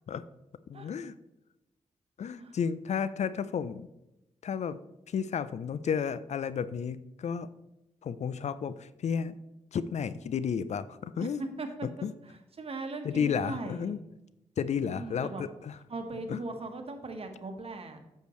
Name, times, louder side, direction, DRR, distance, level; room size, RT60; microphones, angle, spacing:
voice 1, 0.7-1.1 2.2-3.9 4.4-4.8 5.1-7.5 8.0-9.4 9.7-11.4 11.8-12.1 13.0-14.0 14.6-15.8 16.3-16.4, left 7 dB, 60° left, 15 dB, 0.4 m, -32 dB
voice 2, 11.2-14.0 14.9-15.4 15.9-18.0, right 2 dB, 50° right, 5 dB, 1.3 m, -39 dB
8.1 x 6.6 x 3.1 m, 0.93 s
cardioid pair, 55°, 13 cm